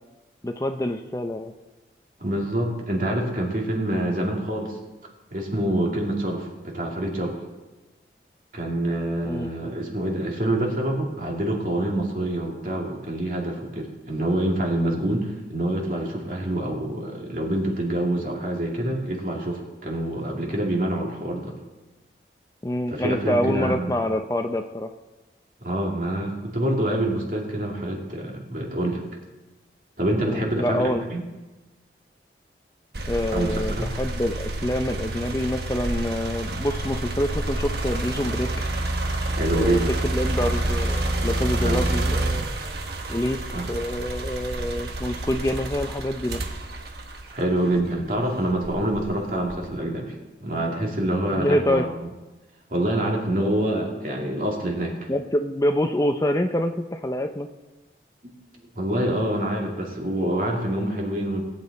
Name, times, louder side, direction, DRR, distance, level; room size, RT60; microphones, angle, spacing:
voice 1, 0.4-1.5 9.2-9.5 22.6-24.9 30.2-31.0 33.1-38.5 39.5-42.5 43.1-43.4 43.7-46.4 51.3-51.9 55.1-57.5, left 1 dB, 20° left, 6 dB, 0.5 m, -26 dB
voice 2, 2.2-4.8 5.3-7.4 8.5-21.5 22.9-24.0 25.6-29.0 30.0-31.2 33.3-33.9 39.4-39.9 41.6-41.8 43.5-43.7 47.3-50.1 50.4-52.1 52.7-55.1 58.2-58.3 58.8-61.4, right 1 dB, 50° right, -1 dB, 2.5 m, -26 dB
sound 1, 32.9-48.0 48.6-49.8, right 1 dB, 65° right, 1.2 m, -28 dB
18.0 x 9.0 x 4.2 m, 1.1 s
head